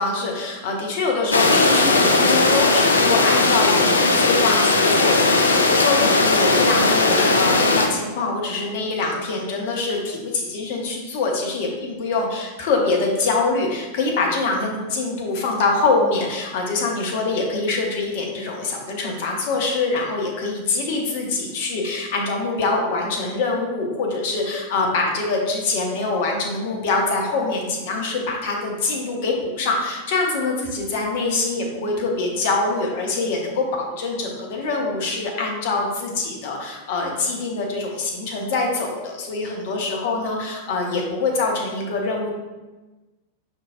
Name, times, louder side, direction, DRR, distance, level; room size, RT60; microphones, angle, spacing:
voice 1, 0.0-42.3, left 3 dB, 50° left, 0 dB, 0.7 m, -24 dB
sound 1, 1.3-7.9, left 3 dB, 75° left, 0.3 m, -17 dB
5.3 x 2.6 x 2.5 m, 1.2 s
figure-of-eight pair, 90°, 0 cm